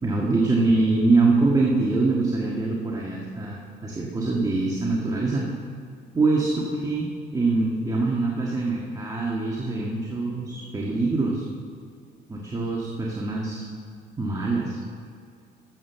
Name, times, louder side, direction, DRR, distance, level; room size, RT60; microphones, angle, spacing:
voice 1, 0.0-5.5 6.1-11.4 12.3-13.7 14.2-14.8, right 3 dB, 20° right, -3 dB, 1.6 m, -24 dB
12.5 x 7.5 x 6.9 m, 2.2 s
cardioid pair, 110°, 17 cm